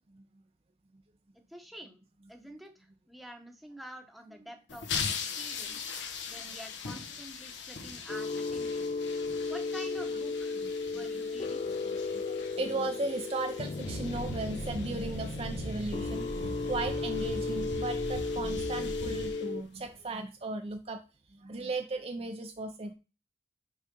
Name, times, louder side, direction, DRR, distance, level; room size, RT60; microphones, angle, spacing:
voice 1, 1.3-2.0 2.3-5.8 6.3-8.9 9.5-10.6 10.9-11.6, right 1 dB, ahead, 4 dB, 1.0 m, -48 dB
sound 1, 4.7-20.1, left 6 dB, 75° left, 1.1 m, -42 dB
sound 2, 8.1-19.6, left 3 dB, 35° left, 0.4 m, -35 dB
voice 2, 11.7-21.0 21.3-22.9, right 2 dB, 30° right, 6 dB, 0.6 m, -37 dB
sound 3, 13.8-19.3, right 2 dB, 75° right, 0.8 m, -39 dB
5.4 x 4.9 x 5.3 m, 0.31 s
head